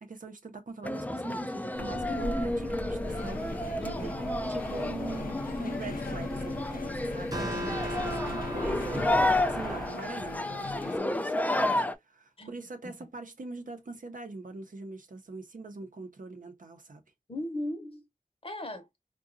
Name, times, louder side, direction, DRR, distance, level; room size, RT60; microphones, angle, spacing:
voice 1, 0.0-17.0, right 3 dB, 70° right, 0.7 m, -43 dB
sound 1, 0.8-12.0, left 1 dB, 10° left, 0.3 m, -31 dB
sound 2, 1.7-9.9, right 1 dB, 25° right, 0.8 m, -38 dB
sound 3, 3.1-11.0, left 5 dB, 80° left, 0.4 m, -42 dB
voice 2, 3.8-4.2 7.5-7.9 12.4-12.6 12.8-12.9 17.3-18.0 18.4-18.9, left 1 dB, 40° left, 0.8 m, -38 dB
3.7 x 2.3 x 2.4 m
wide cardioid pair, 70°, 14 cm